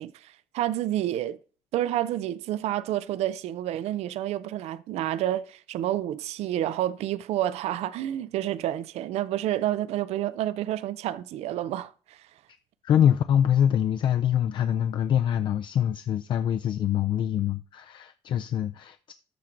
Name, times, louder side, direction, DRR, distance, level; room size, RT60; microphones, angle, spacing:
voice 1, 0.0-1.4 1.7-12.2, right 13 dB, 80° right, 0.5 m, -29 dB
voice 2, 12.8-19.1, left 10 dB, 50° left, 0.4 m, -24 dB
13.0 x 4.5 x 3.8 m
cardioid pair, 170°, 11 cm